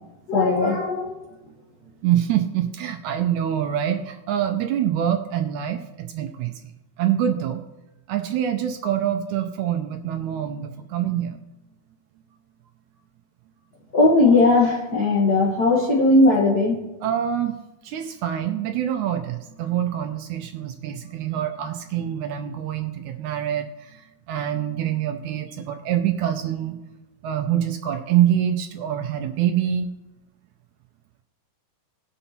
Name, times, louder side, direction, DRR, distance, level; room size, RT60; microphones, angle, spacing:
voice 1, 0.3-1.1 13.9-16.8, left 2 dB, 75° left, -3 dB, 0.9 m, -18 dB
voice 2, 2.0-6.7 7.0-7.6 8.1-11.4 17.0-17.5 17.8-26.8 27.2-29.9, right 10 dB, 80° right, 7 dB, 1.8 m, -25 dB
19.0 x 6.8 x 2.9 m, 1.0 s
omnidirectional pair, 3.9 m